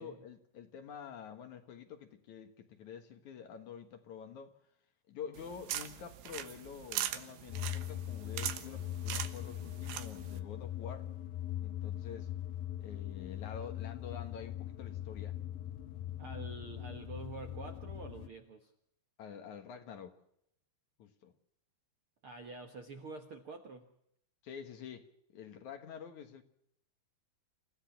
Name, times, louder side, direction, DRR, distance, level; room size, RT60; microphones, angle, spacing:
voice 1, 0.0-4.5 5.1-11.1 11.6-12.3 12.8-15.4 19.2-20.2 21.0-21.3 24.4-25.1 25.3-26.4, left 7 dB, 60° left, 2.5 m, -48 dB
sound 1, 5.4-10.4, right 12 dB, 90° right, 3.3 m, -41 dB
sound 2, 7.5-18.3, left 12 dB, 75° left, 2.9 m, -41 dB
voice 2, 16.2-18.7 22.2-23.9, right 3 dB, 60° right, 1.4 m, -47 dB
29.0 x 16.0 x 5.9 m
omnidirectional pair, 4.5 m